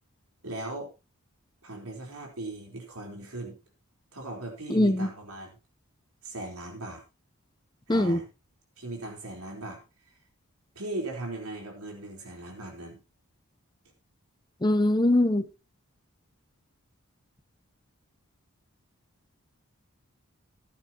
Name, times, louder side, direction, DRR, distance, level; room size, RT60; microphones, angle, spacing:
voice 1, 0.4-0.9 1.6-3.6 4.1-5.6 6.2-7.0 7.9-8.3 8.8-9.8 10.7-13.0, right 2 dB, 80° right, 1 dB, 4.2 m, -38 dB
voice 2, 4.7-5.1 7.9-8.2 14.6-15.4, left 1 dB, 20° left, 11 dB, 0.7 m, -22 dB
14.5 x 11.0 x 3.0 m, 0.28 s
head